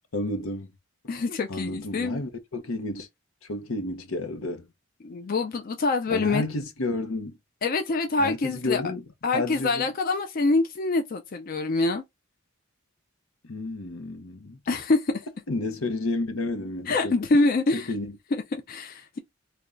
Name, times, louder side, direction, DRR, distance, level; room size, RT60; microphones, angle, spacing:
voice 1, 0.1-0.7 1.5-3.1 3.5-4.7 6.1-7.4 8.2-9.0 9.3-9.9 13.4-14.6 15.5-17.1 17.7-18.2, left 2 dB, 75° left, 0.8 m, -31 dB
voice 2, 1.1-2.2 5.0-6.4 7.6-8.8 9.2-12.0 14.7-15.2 16.9-17.9 18.3-19.2, left 3 dB, 45° left, 0.4 m, -25 dB
3.4 x 2.2 x 3.7 m
head